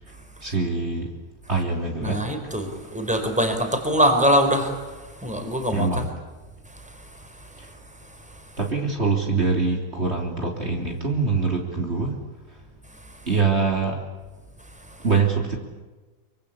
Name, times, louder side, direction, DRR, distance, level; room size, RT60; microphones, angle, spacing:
voice 1, 0.4-1.1 1.5-2.6 5.7-6.1 7.6-7.7 8.6-12.2 13.3-14.0 15.0-15.6, right 4 dB, 40° right, 1 dB, 3.6 m, -24 dB
voice 2, 2.0-6.1 6.7-6.8, equal, 5° right, 5 dB, 4.0 m, -23 dB
25.0 x 25.0 x 8.5 m, 1.2 s
omnidirectional pair, 1.6 m